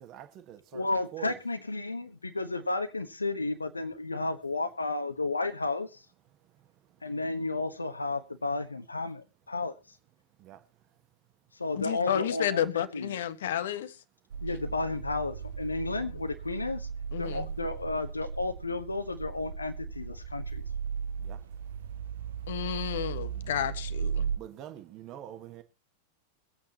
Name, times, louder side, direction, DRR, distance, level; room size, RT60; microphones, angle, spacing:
voice 1, 0.0-1.4 10.4-10.6 17.3-17.4 21.2-21.4 23.3-23.7 24.4-25.6, right 11 dB, 35° right, 1.4 m, -46 dB
voice 2, 0.7-6.0 7.0-9.8 11.5-12.7 12.9-13.2 14.4-16.9 17.2-20.6, left 2 dB, 80° left, 1.1 m, -32 dB
voice 3, 11.7-14.0 15.9-16.0 17.1-17.5 22.5-24.3, left 10 dB, 60° left, 1.3 m, -31 dB
sound 1, 14.3-24.4, right 7 dB, 60° right, 0.6 m, -36 dB
24.0 x 8.7 x 2.9 m
figure-of-eight pair, 90°, 0 cm